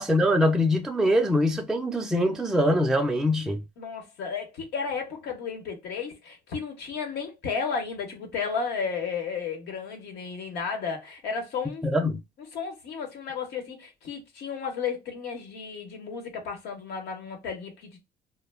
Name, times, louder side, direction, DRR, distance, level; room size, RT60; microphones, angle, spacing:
voice 1, 0.0-3.6 11.8-12.2, equal, 5° right, 0.4 m, -23 dB
voice 2, 3.8-11.9 12.5-18.0, left 5 dB, 80° left, 1.0 m, -33 dB
2.1 x 2.0 x 3.3 m
cardioid pair, 110°, 17 cm